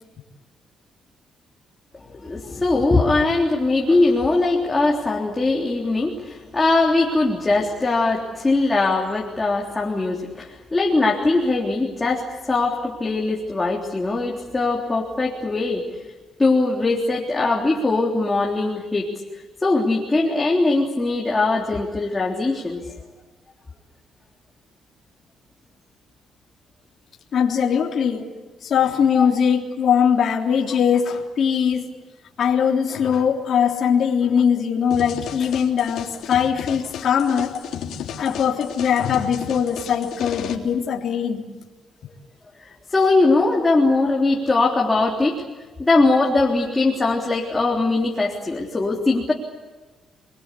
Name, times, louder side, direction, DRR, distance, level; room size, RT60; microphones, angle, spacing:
voice 1, 2.1-15.9 16.4-22.8 29.1-29.3 42.6-45.4 45.8-49.3, left 3 dB, 15° left, 3.6 m, -21 dB
voice 2, 27.3-28.3 28.6-31.9 32.4-37.5 38.2-41.5, left 7 dB, 55° left, 3.5 m, -21 dB
sound 1, 34.9-40.5, left 8 dB, 80° left, 3.5 m, -34 dB
29.5 x 22.5 x 8.5 m
cardioid pair, 125°, 0 cm